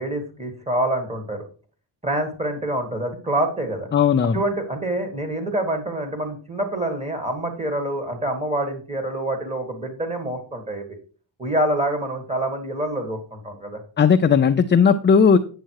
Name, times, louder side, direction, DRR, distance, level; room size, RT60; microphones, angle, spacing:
voice 1, 0.0-1.4 2.0-3.9 4.2-10.8 11.4-13.8, right 1 dB, 15° right, 5 dB, 1.8 m, -26 dB
voice 2, 3.9-4.4 14.0-15.4, left 6 dB, 25° left, 6 dB, 0.4 m, -16 dB
9.3 x 7.6 x 4.7 m, 0.39 s
wide cardioid pair, 175°, 44 cm